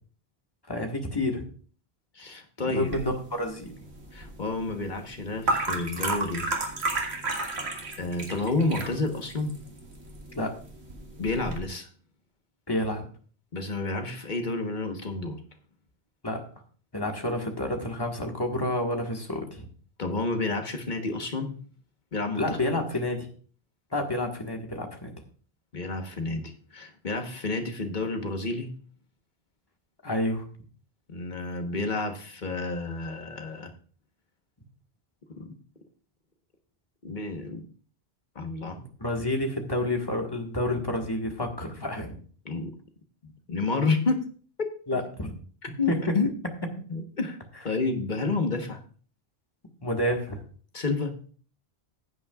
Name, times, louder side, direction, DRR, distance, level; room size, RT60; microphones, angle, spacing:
voice 1, 0.7-1.4 2.7-3.7 10.3-10.5 12.7-13.0 16.2-16.4 16.9-19.6 22.3-23.3 23.9-25.1 30.0-30.4 38.8-42.2 44.9-45.3 45.9-46.0 49.8-50.4, left 1 dB, 20° left, 2 dB, 1.6 m, -29 dB
voice 2, 2.1-2.9 4.1-6.5 8.0-9.6 11.2-11.9 13.5-15.4 20.0-21.5 22.1-22.6 25.7-28.7 31.1-33.7 35.4-35.5 37.0-37.6 38.3-38.8 42.4-42.7 43.2-44.2 45.8-46.3 46.9-47.4 47.6-48.8 50.7-51.1, left 3 dB, 45° left, 4 dB, 1.4 m, -30 dB
sound 1, 2.9-11.6, right 2 dB, 80° right, 2.1 m, -33 dB
16.0 x 8.4 x 2.4 m, 0.43 s
omnidirectional pair, 1.1 m